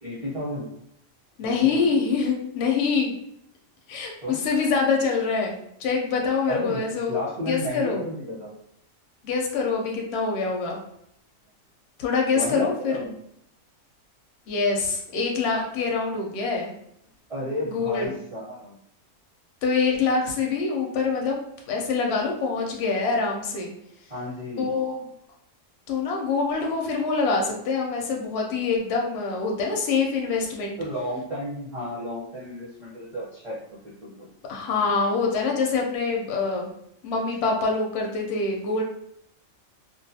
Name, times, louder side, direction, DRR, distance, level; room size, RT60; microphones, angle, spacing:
voice 1, 0.0-0.7 1.4-1.9 4.2-4.4 6.5-8.5 12.3-13.1 17.3-18.8 24.1-24.7 30.8-34.3, left 1 dB, 35° right, -9 dB, 0.7 m, -33 dB
voice 2, 1.4-3.1 3.9-8.0 9.2-10.8 12.0-13.0 14.5-16.7 17.7-18.1 19.6-21.4 21.7-23.7 24.6-25.0 25.9-30.8 34.5-36.7 37.0-38.8, left 4 dB, 65° left, 0 dB, 0.7 m, -25 dB
2.4 x 2.3 x 2.6 m, 0.75 s
omnidirectional pair, 1.4 m